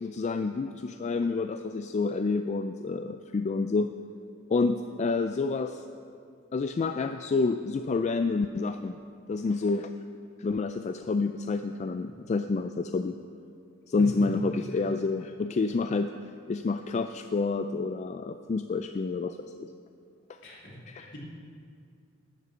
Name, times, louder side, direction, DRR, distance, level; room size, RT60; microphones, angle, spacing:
voice 1, 0.0-3.9 4.5-5.8 6.5-9.0 9.3-9.9 10.4-13.2 13.9-16.1 16.5-19.7 20.9-21.0, left 3 dB, 35° left, 8 dB, 0.3 m, -28 dB
voice 2, 20.4-21.2, left 1 dB, 65° left, -4 dB, 2.9 m, -45 dB
12.0 x 6.6 x 7.4 m, 2.4 s
head